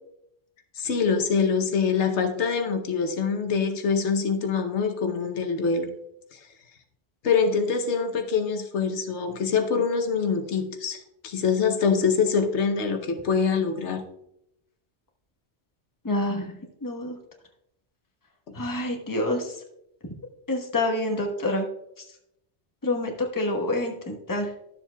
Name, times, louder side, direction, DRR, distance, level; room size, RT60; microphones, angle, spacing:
voice 1, 0.8-5.9 6.3-6.4 7.2-14.0 18.5-18.6, left 5 dB, 85° left, 5 dB, 1.1 m, -24 dB
voice 2, 16.0-17.2 18.5-19.6 20.5-21.7 22.0-22.1 22.8-24.5, left 1 dB, 20° left, 2 dB, 1.0 m, -27 dB
12.5 x 7.2 x 2.3 m, 0.80 s
omnidirectional pair, 1.1 m